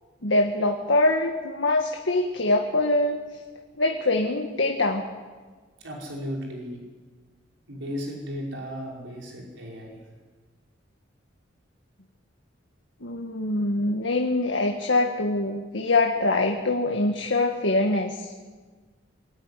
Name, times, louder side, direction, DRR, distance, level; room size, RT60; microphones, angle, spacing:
voice 1, 0.2-3.2 3.8-5.0 13.0-18.3, left 2 dB, 75° left, 2 dB, 1.7 m, -24 dB
voice 2, 5.8-6.8 7.7-9.9, equal, 85° right, -2 dB, 5.4 m, -35 dB
23.5 x 14.5 x 10.0 m, 1.4 s
head